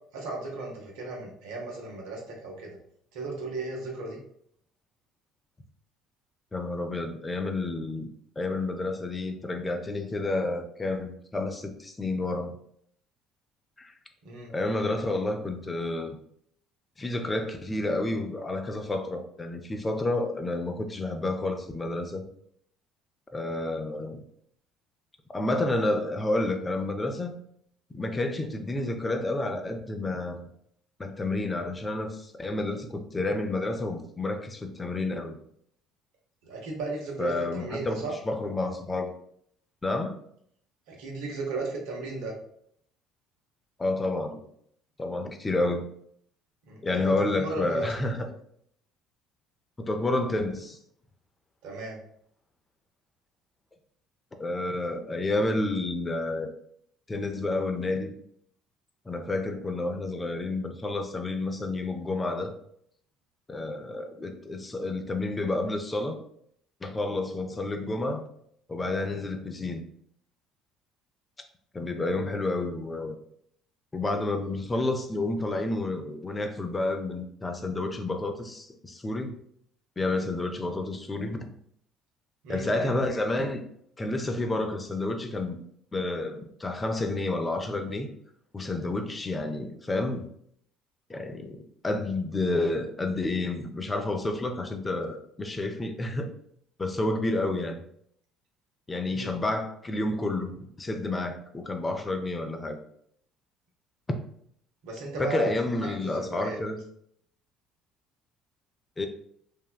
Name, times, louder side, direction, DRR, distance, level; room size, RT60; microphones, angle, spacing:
voice 1, 0.1-2.8 3.1-4.2 14.2-14.5 36.4-38.1 40.9-42.3 46.7-47.9 51.6-52.0 82.4-83.0 99.1-99.3 104.8-106.6, right 3 dB, 70° right, -1 dB, 0.8 m, -36 dB
voice 2, 6.5-12.6 13.8-13.9 14.5-16.2 17.0-22.2 23.3-24.2 25.3-27.4 27.9-30.5 31.0-35.4 37.2-39.1 39.8-40.1 43.8-44.4 45.0-45.9 46.8-48.3 49.8-50.8 54.4-56.5 57.1-58.1 59.1-62.5 63.5-66.2 66.8-68.2 68.7-69.8 71.7-73.2 73.9-79.4 80.0-81.5 82.5-83.6 84.0-85.6 85.9-88.1 88.5-90.3 91.1-91.6 91.8-96.3 96.8-97.8 98.9-102.8 105.2-106.8 109.0-109.1, left 2 dB, 25° left, 5 dB, 0.5 m, -30 dB
3.4 x 2.1 x 2.2 m, 0.67 s
hypercardioid pair, 60°, 0 cm